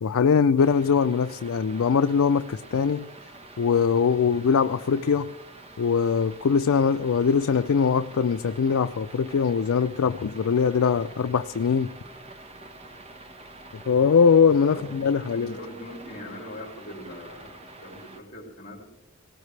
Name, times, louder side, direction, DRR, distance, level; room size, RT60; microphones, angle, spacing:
voice 1, 0.0-3.1 3.6-5.3 5.8-11.9 13.9-15.5, left 6 dB, 80° left, 0.4 m, -22 dB
sound 1, 0.6-18.2, right 2 dB, 30° right, 1.2 m, -46 dB
voice 2, 14.7-18.8, left 1 dB, 40° left, 4.2 m, -41 dB
18.5 x 18.5 x 3.3 m
head